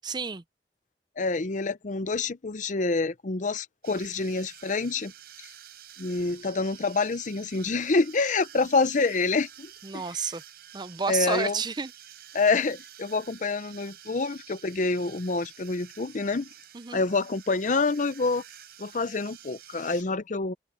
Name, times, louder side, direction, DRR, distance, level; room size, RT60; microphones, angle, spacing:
voice 1, 0.0-0.4 9.8-10.4 10.7-11.9 16.7-17.0, right 5 dB, 25° right, 0.6 m, -30 dB
voice 2, 1.2-5.1 6.0-10.0 11.1-11.6 12.3-16.5 16.9-18.4 18.8-20.5, left 3 dB, 45° left, 0.7 m, -27 dB
sound 1, 3.8-20.0, right 11 dB, 60° right, 5.8 m, -49 dB
head